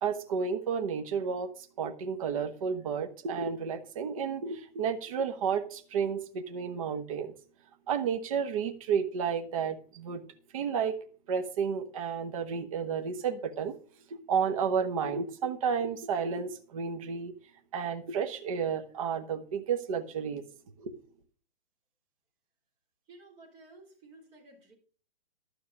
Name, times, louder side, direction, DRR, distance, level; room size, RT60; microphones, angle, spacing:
voice 1, 0.0-7.3 7.9-10.2 10.5-10.9 11.3-13.7 14.1-17.3 17.7-20.4 20.8-20.9, right 6 dB, 35° right, 1.0 m, -31 dB
voice 2, 23.1-24.7, right 2 dB, 20° right, 4.0 m, -54 dB
12.0 x 6.5 x 6.4 m
hypercardioid pair, 165°, 30 cm